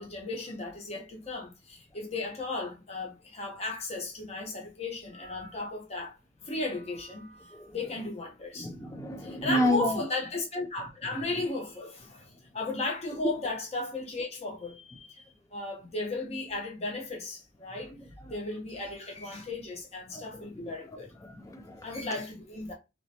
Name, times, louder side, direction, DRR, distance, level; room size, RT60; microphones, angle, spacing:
voice 1, 0.0-6.2 6.4-8.7 9.2-15.2 15.5-17.9 18.3-21.1 21.8-22.7, left 2 dB, 35° left, 0.9 m, -35 dB
voice 2, 8.6-10.0 20.1-20.2 20.6-20.7 21.2-21.9, left 1 dB, 15° left, 0.4 m, -30 dB
3.1 x 3.0 x 2.8 m
head